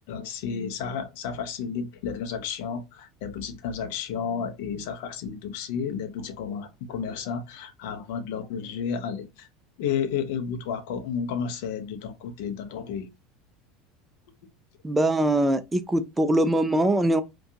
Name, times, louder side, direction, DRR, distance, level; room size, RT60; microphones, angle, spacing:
voice 1, 0.1-9.5 9.8-13.1, left 7 dB, 60° left, 0.5 m, -32 dB
voice 2, 14.8-17.2, right 1 dB, 10° right, 0.3 m, -22 dB
2.6 x 2.2 x 2.6 m
figure-of-eight pair, 75°, 0 cm